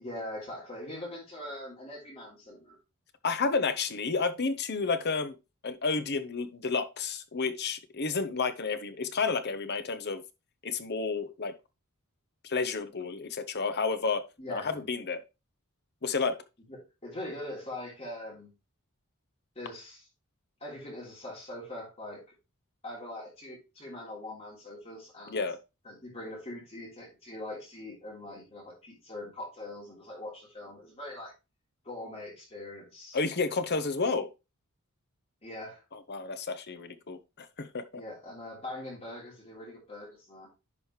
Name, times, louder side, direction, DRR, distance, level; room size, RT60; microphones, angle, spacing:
voice 1, 0.0-2.8 14.4-14.8 16.7-18.5 19.5-20.1 20.6-22.2 22.8-25.4 25.8-31.3 31.8-33.2 35.4-35.8 37.9-40.5, left 1 dB, 30° left, 3.1 m, -42 dB
voice 2, 3.2-5.4 5.6-10.2 10.6-11.5 12.4-14.2 14.5-15.2 16.0-16.4 25.3-25.6 33.1-34.3 35.9-37.8, left 4 dB, 50° left, 0.9 m, -31 dB
10.5 x 5.0 x 3.2 m
head